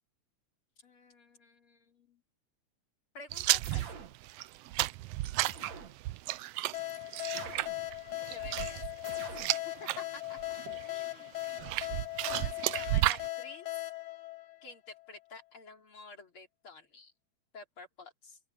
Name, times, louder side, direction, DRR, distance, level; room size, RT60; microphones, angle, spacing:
voice 1, 0.8-2.2 3.1-4.1 8.3-10.4 10.8-11.4 12.2-13.8 14.6-17.1 17.5-18.4, left 3 dB, 45° left, 3.9 m, -51 dB
sound 1, 3.3-10.0 10.4-10.9 11.4-13.3, right 16 dB, 85° right, 1.3 m, -32 dB
sound 2, 3.6-4.2 5.4-6.0 7.3-7.8 9.0-9.6, right 6 dB, 70° right, 3.5 m, -46 dB
sound 3, 6.7-15.2, left 17 dB, 65° left, 1.0 m, -39 dB
open air
omnidirectional pair, 3.3 m